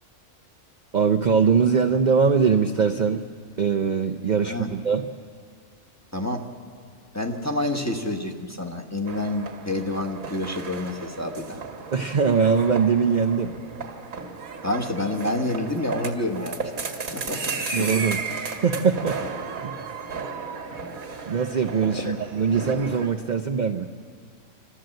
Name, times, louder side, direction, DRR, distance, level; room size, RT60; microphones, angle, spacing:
voice 1, 0.9-3.2 3.6-5.1 11.9-13.5 17.7-18.2 18.6-19.2 19.6-19.8 21.3-23.9, right 6 dB, 50° right, 4 dB, 0.6 m, -22 dB
voice 2, 6.1-6.5 7.1-11.6 14.6-16.6 17.1-17.9 19.2-19.5 22.0-22.1, left 1 dB, 15° left, 1 dB, 1.1 m, -28 dB
sound 1, 9.1-23.1, right 4 dB, 90° right, 2.2 m, -34 dB
27.5 x 13.0 x 7.7 m, 2.2 s
omnidirectional pair, 1.4 m